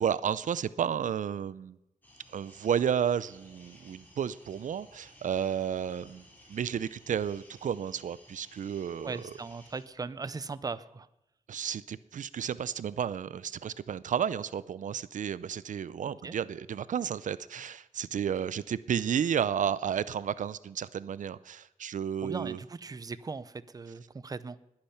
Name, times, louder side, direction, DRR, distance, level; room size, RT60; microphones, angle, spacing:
voice 1, 0.0-1.8 2.3-9.2 11.5-22.6, right 8 dB, 85° right, 18 dB, 0.4 m, -32 dB
sound 1, 2.0-9.8, left 1 dB, 15° left, 3.6 m, -57 dB
voice 2, 9.0-11.1 16.1-16.4 22.2-24.6, right 4 dB, 30° right, 16 dB, 0.5 m, -39 dB
20.5 x 8.7 x 5.8 m, 0.88 s
wide cardioid pair, 140°, 13 cm